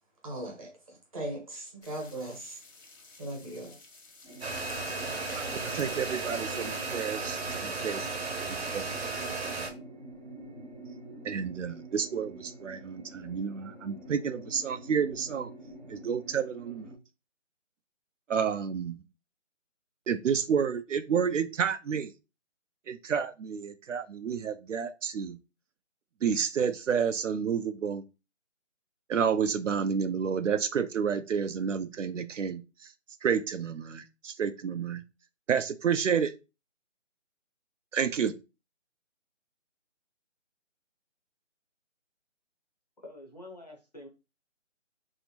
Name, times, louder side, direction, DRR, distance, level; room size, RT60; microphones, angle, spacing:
voice 1, 0.2-2.6 3.2-3.8, right 1 dB, 30° right, 0 dB, 1.0 m, -39 dB
sound 1, 1.8-7.1, left 3 dB, 85° left, 1.1 m, -53 dB
sound 2, 4.2-16.9, right 1 dB, 10° right, 0.7 m, -46 dB
sound 3, 4.4-9.7, right 3 dB, 55° right, 0.9 m, -35 dB
voice 2, 5.3-8.1 8.4-8.9 9.6-9.7 11.2-15.5 15.9-16.9 18.3-19.0 20.1-22.1 22.9-25.4 26.2-28.0 29.1-32.9 33.2-35.0 35.5-36.3 37.9-38.3, right 7 dB, 75° right, 10 dB, 0.5 m, -30 dB
voice 3, 43.0-44.1, left 1 dB, 35° left, 1 dB, 0.6 m, -47 dB
3.1 x 2.7 x 3.0 m, 0.28 s
figure-of-eight pair, 165°, 38 cm